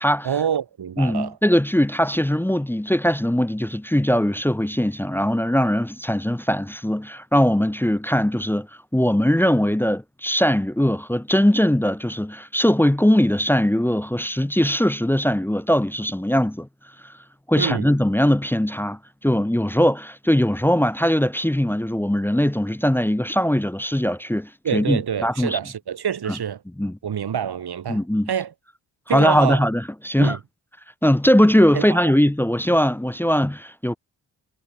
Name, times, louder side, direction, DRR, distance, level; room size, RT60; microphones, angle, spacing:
voice 1, 0.2-1.4 17.6-17.9 24.6-26.6 27.0-28.0 28.3-28.5 29.1-29.6 30.2-30.4 31.7-32.0, right 8 dB, 70° right, 5.5 m, -26 dB
voice 2, 1.0-8.7 8.9-16.7 17.0-17.1 17.5-25.6 26.8-26.9 27.9-28.3 29.1-30.4 31.0-34.0, equal, 5° left, 0.9 m, -20 dB
cardioid pair, 105°, 40 cm